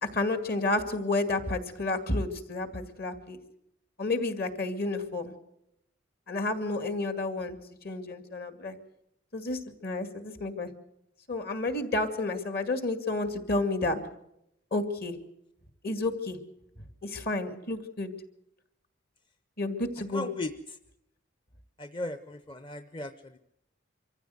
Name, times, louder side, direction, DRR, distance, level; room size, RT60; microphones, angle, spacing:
voice 1, 0.0-3.4 4.0-5.3 6.3-7.6 7.8-8.8 9.3-10.7 11.3-14.0 14.7-15.2 15.8-16.4 17.0-18.1 19.6-20.3, left 2 dB, 55° left, 9 dB, 2.3 m, -31 dB
voice 2, 20.1-20.8 21.8-23.4, left 2 dB, 25° left, 10 dB, 0.7 m, -37 dB
24.5 x 15.0 x 7.9 m, 0.80 s
head